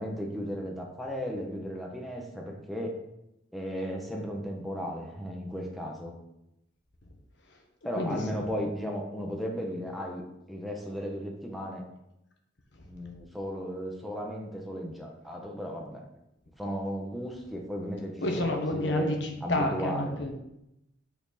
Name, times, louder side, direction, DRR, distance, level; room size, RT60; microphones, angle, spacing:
voice 1, 0.0-2.9 3.5-6.1 7.8-10.2 10.5-11.8 12.8-16.0 16.6-19.1 19.4-20.2, equal, ahead, -1 dB, 1.0 m, -35 dB
voice 2, 12.7-13.2 18.2-20.3, left 1 dB, 60° left, 2 dB, 1.3 m, -30 dB
8.6 x 4.4 x 4.2 m, 0.85 s
head